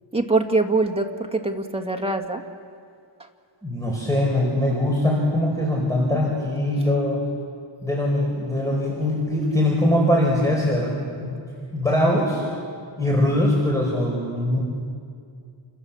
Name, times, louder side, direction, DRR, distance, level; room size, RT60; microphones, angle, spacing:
voice 1, 0.1-2.4, right 3 dB, 10° right, 3 dB, 2.1 m, -23 dB
voice 2, 3.6-7.2 7.8-11.4 11.7-12.5 13.0-14.6, left 1 dB, 5° left, -3 dB, 5.0 m, -22 dB
29.5 x 26.5 x 7.3 m, 2.4 s
wide cardioid pair, 95°, 49 cm